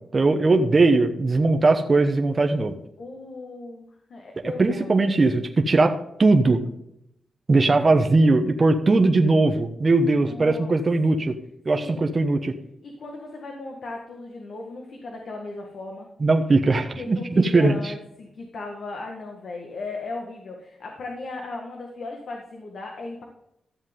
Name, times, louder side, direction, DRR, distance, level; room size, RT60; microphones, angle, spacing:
voice 1, 0.1-2.8 4.4-6.6 7.5-11.4 11.6-12.6 16.2-17.8, right 3 dB, 35° right, 5 dB, 1.1 m, -19 dB
voice 2, 3.0-4.9 7.7-8.0 10.1-10.7 11.1-11.3 11.7-12.0 12.8-16.1 17.0-23.2, left 3 dB, 70° left, 1 dB, 1.8 m, -37 dB
13.5 x 7.4 x 3.7 m, 0.79 s
cardioid pair, 90°, 0 cm